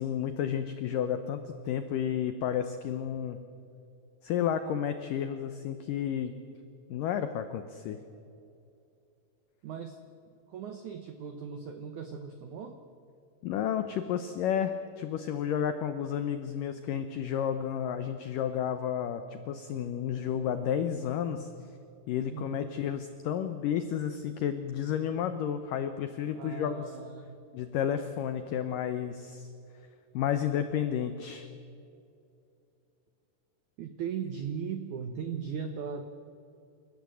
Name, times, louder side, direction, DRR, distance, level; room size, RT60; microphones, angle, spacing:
voice 1, 0.0-3.4 4.2-6.3 6.9-8.0 13.4-21.5 22.1-27.0 27.5-29.5 30.1-31.5, left 9 dB, 85° left, 9 dB, 1.9 m, -31 dB
voice 2, 9.6-10.0 10.5-12.8 22.3-22.6 26.4-27.3 33.8-36.0, right 7 dB, 85° right, 7 dB, 1.7 m, -38 dB
28.5 x 14.5 x 7.6 m, 2.6 s
omnidirectional pair, 5.1 m